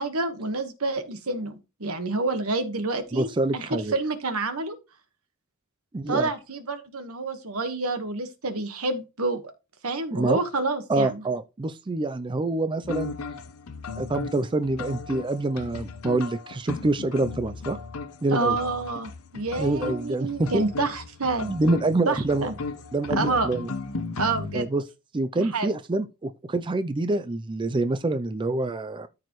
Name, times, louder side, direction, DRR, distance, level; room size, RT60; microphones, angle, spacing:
voice 1, 0.0-4.8 6.1-9.4 9.8-11.2 18.3-21.5 22.0-22.5 23.1-23.5 24.2-24.7 25.4-25.7, right 3 dB, 75° right, 1.4 m, -28 dB
voice 2, 3.1-4.0 5.9-6.3 10.1-10.4 10.9-13.1 14.0-17.8 18.2-18.6 19.6-20.6 21.5-22.5 22.9-23.7 24.5-24.8 25.1-29.1, right 2 dB, 20° right, 0.4 m, -26 dB
sound 1, 12.8-24.6, left 4 dB, 80° left, 0.7 m, -36 dB
13.5 x 4.8 x 3.1 m
head